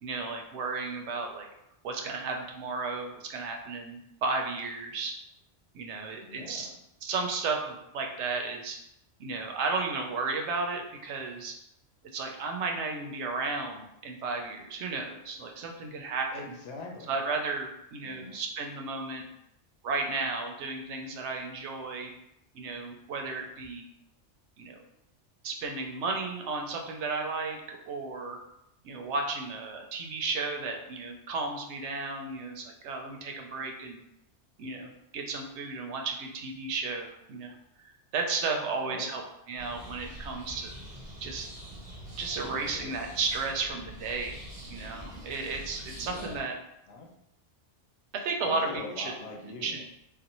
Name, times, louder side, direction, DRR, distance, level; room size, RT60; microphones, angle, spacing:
voice 1, 0.0-1.5 1.8-5.1 5.7-6.7 7.0-8.8 9.2-11.5 12.1-16.3 17.1-19.2 19.8-22.1 22.5-23.8 24.6-24.8 25.4-28.4 28.8-34.0 34.6-37.5 38.1-40.8 41.2-41.5 42.2-44.4 44.7-46.5 48.1-49.1 49.6-49.9, right 4 dB, 75° right, 2 dB, 0.9 m, -33 dB
voice 2, 6.1-6.7 16.3-17.1 18.0-18.4 38.6-39.1 42.4-43.0 45.9-46.5 46.9-47.1 48.4-49.9, left 3 dB, 80° left, 1 dB, 1.0 m, -43 dB
sound 1, 39.6-46.4, right 1 dB, 35° right, 0.7 m, -45 dB
3.5 x 2.5 x 2.9 m, 0.83 s
omnidirectional pair, 1.2 m